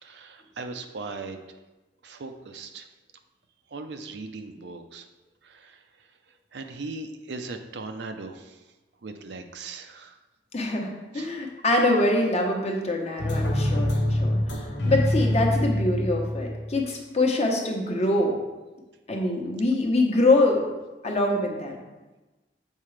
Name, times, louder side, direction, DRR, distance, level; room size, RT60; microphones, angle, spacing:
voice 1, 0.0-1.4 2.0-2.9 3.7-5.1 5.4-5.8 6.5-8.6 9.0-10.2 11.1-11.3, right 3 dB, 70° right, 6 dB, 0.5 m, -38 dB
voice 2, 10.5-18.4 19.1-20.6 21.0-21.7, left 2 dB, 40° left, 1 dB, 1.0 m, -24 dB
sound 1, 13.2-16.8, left 1 dB, 85° left, 1.1 m, -25 dB
7.4 x 4.7 x 3.3 m, 1.1 s
head